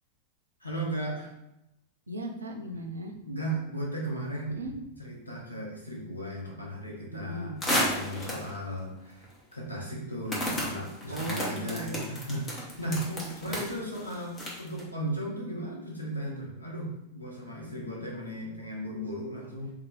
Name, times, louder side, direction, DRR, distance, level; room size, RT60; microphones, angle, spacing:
voice 1, 0.6-1.3 3.2-4.5 5.0-9.3 9.5-13.1 13.4-19.7, right 1 dB, 90° left, -3 dB, 0.9 m, -36 dB
voice 2, 2.1-3.2 4.5-4.8 7.1-7.6 11.1-12.1 13.1-13.6, right 1 dB, 75° right, 4 dB, 0.5 m, -37 dB
sound 1, 7.6-8.6 9.2-9.3 10.3-14.8, equal, 20° left, 1.2 m, -32 dB
3.5 x 2.8 x 3.5 m, 0.88 s
figure-of-eight pair, 90°, 0 cm